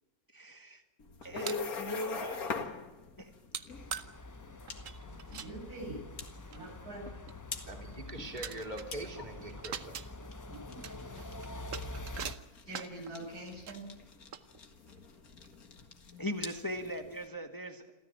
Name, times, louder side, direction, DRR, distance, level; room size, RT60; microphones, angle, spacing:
voice 1, 0.3-0.8 1.2-2.7 3.2-3.3 16.2-17.9, left 1 dB, 15° left, 5 dB, 1.5 m, -39 dB
sound 1, 1.0-17.3, left 5 dB, 70° left, 2.3 m, -45 dB
sound 2, 1.2-1.7 3.5-3.7 3.9-4.1 4.7-5.5 6.2-6.3 6.5-6.6 7.1-7.3 7.9-8.0 8.3-9.1 9.4-10.1 10.6-13.1 13.7-13.8 14.3-15.0 15.4-15.6 16.2-16.3 16.6-16.9, right 8 dB, 60° right, 1.3 m, -43 dB
sound 3, 3.7-12.3, left 2 dB, 30° left, 0.3 m, -46 dB
voice 2, 5.3-6.0 6.5-7.1 10.5-11.4 12.7-13.9, right 1 dB, 85° right, 1 dB, 7.5 m, -45 dB
voice 3, 7.7-10.0, right 1 dB, 30° right, 2 dB, 3.2 m, -42 dB
28.0 x 14.0 x 8.9 m, 1.1 s
omnidirectional pair, 1.6 m